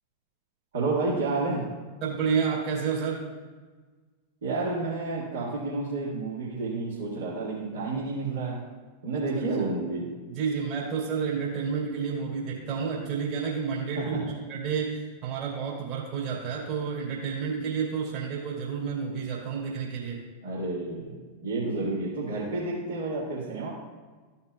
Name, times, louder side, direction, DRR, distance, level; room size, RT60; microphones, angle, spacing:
voice 1, 0.7-1.6 4.4-8.6 9.0-10.1 14.0-14.2 20.4-21.2 21.4-23.7, right 3 dB, 65° right, -7 dB, 1.9 m, -30 dB
voice 2, 2.0-3.3 9.4-9.7 10.3-14.2 14.5-20.2, right 6 dB, 40° right, -4 dB, 2.5 m, -30 dB
14.0 x 5.6 x 2.3 m, 1.4 s
figure-of-eight pair, 90°, 0 cm